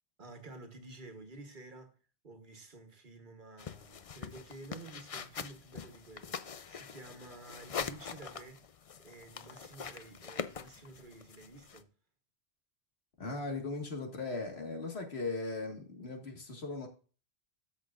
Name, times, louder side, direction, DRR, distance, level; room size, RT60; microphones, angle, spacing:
voice 1, 0.2-2.0 2.2-8.7 9.0-11.9, right 2 dB, 50° right, 1.4 m, -51 dB
sound 1, 3.6-11.8, left 6 dB, 45° left, 0.5 m, -43 dB
voice 2, 13.2-16.9, left 3 dB, 75° left, 2.0 m, -38 dB
13.5 x 6.2 x 2.5 m
omnidirectional pair, 1.1 m